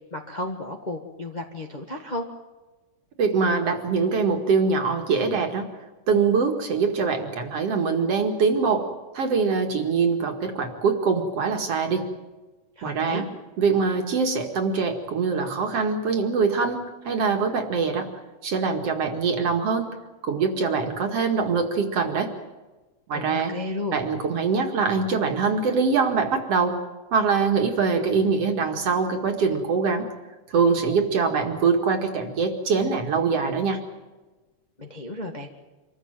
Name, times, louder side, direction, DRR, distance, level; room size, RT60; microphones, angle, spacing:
voice 1, 0.1-2.3 12.8-13.3 23.1-24.0 34.8-35.5, left 2 dB, 30° left, 3 dB, 0.8 m, -33 dB
voice 2, 3.2-5.7 6.1-8.9 9.1-12.1 12.8-13.2 13.6-16.8 17.0-18.1 18.4-19.9 20.2-22.3 23.1-23.5 23.9-26.8 27.1-30.1 30.5-33.8, right 5 dB, 50° right, 5 dB, 2.8 m, -23 dB
26.0 x 14.5 x 9.0 m, 1.2 s
omnidirectional pair, 3.8 m